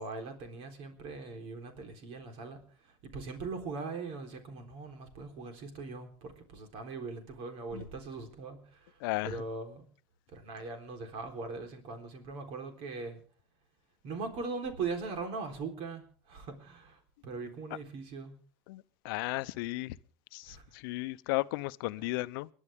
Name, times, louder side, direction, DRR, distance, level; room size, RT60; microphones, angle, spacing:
voice 1, 0.0-2.6 2.8-9.8 10.3-13.2 14.0-18.3 20.5-20.6, right 4 dB, 60° right, 3.8 m, -40 dB
voice 2, 9.0-9.4 18.7-20.0 20.3-22.5, left 21 dB, 90° left, 0.6 m, -35 dB
30.0 x 11.0 x 3.6 m
cardioid pair, 140°, 11 cm